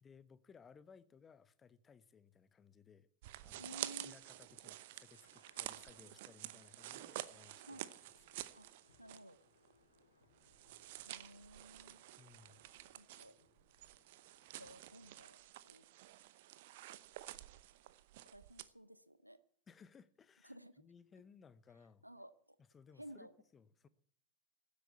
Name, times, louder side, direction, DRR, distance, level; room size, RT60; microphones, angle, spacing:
voice 1, 0.0-3.1 3.4-3.8 4.0-7.8 12.2-12.6 14.6-14.7 19.7-22.1 22.6-23.9, left 6 dB, 20° left, 0.9 m, -62 dB
sound 1, 3.2-9.4 9.7-9.8 10.4-18.7, right 15 dB, 50° right, 0.8 m, -50 dB
voice 2, 3.6-4.2 7.7-7.9 8.5-8.7 9.0-9.4 11.1-12.0 13.0-13.3 14.6-15.4 15.6-15.8 18.3-19.4 20.4-20.7 22.0-22.3 23.0-23.3, right 1 dB, 90° right, 0.7 m, -54 dB
Thunder, 4.8-15.4, left 3 dB, 75° left, 2.7 m, -73 dB
15.5 x 8.5 x 8.2 m
figure-of-eight pair, 90°, 0 cm